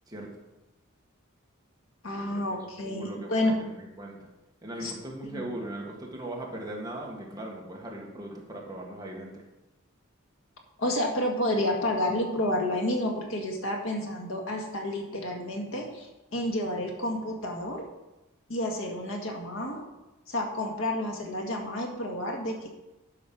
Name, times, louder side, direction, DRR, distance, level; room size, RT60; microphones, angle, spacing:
voice 1, 0.1-0.4 2.2-2.4 2.8-4.3 4.6-9.4, right 1 dB, 20° right, -1 dB, 1.6 m, -39 dB
voice 2, 2.0-3.5 4.8-4.9 5.3-5.5 10.8-17.9 18.5-19.8 20.3-22.7, left 1 dB, 75° left, 1 dB, 1.8 m, -30 dB
10.5 x 5.4 x 6.1 m, 1.0 s
head